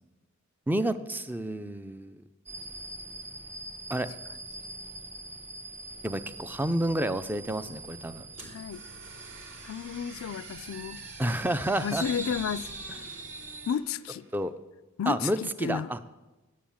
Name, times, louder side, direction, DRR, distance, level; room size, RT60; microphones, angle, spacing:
voice 1, 0.7-2.2 3.9-4.1 6.0-8.2 11.2-12.1 14.3-14.5 15.1-16.0, right 1 dB, 10° right, 0.4 m, -29 dB
sound 1, 2.5-13.8, right 2 dB, 35° right, 0.9 m, -43 dB
sound 2, 8.3-14.5, right 2 dB, 70° right, 2.4 m, -49 dB
voice 2, 8.5-8.8 9.6-11.0 11.8-12.7 13.7-14.2 15.0-15.9, left 7 dB, 70° left, 0.3 m, -32 dB
9.4 x 7.2 x 8.6 m
head